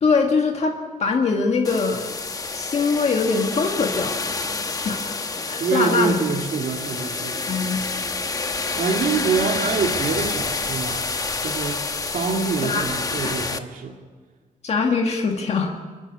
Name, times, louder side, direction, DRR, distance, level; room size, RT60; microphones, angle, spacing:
voice 1, 0.0-2.1 2.5-4.2 4.8-5.2 5.5-6.2 7.5-7.8 12.6-12.9 14.6-15.8, left 4 dB, 50° left, 2 dB, 1.8 m, -22 dB
sound 1, 1.6-13.6, left 3 dB, 25° left, 1.0 m, -28 dB
voice 2, 5.6-7.5 8.8-11.1 11.4-11.8 12.1-14.0, right 5 dB, 80° right, 3 dB, 2.5 m, -25 dB
29.5 x 11.0 x 9.6 m, 1.4 s
wide cardioid pair, 165°, 14 cm